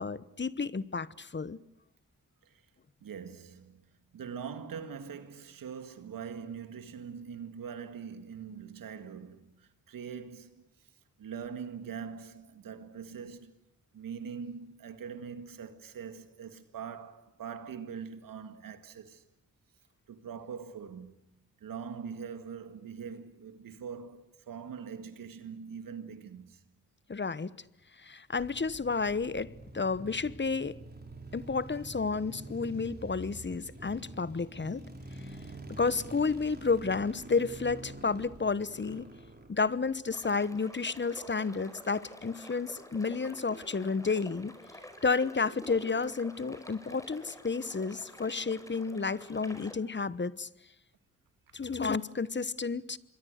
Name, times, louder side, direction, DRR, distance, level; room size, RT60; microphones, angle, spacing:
voice 1, 0.0-1.6 27.1-27.5 28.0-30.8 31.3-34.8 35.8-39.1 39.5-44.5 45.0-50.5 51.5-53.0, left 4 dB, 35° left, 1.1 m, -31 dB
voice 2, 3.0-3.8 4.1-10.9 11.2-13.6 13.9-19.2 20.1-21.2 21.6-26.6, right 7 dB, 90° right, 1.9 m, -43 dB
sound 1, 28.4-40.6, right 2 dB, 30° right, 5.7 m, -47 dB
sound 2, 40.1-49.7, left 1 dB, 10° left, 5.0 m, -49 dB
27.0 x 22.5 x 6.6 m
cardioid pair, 50°, 33 cm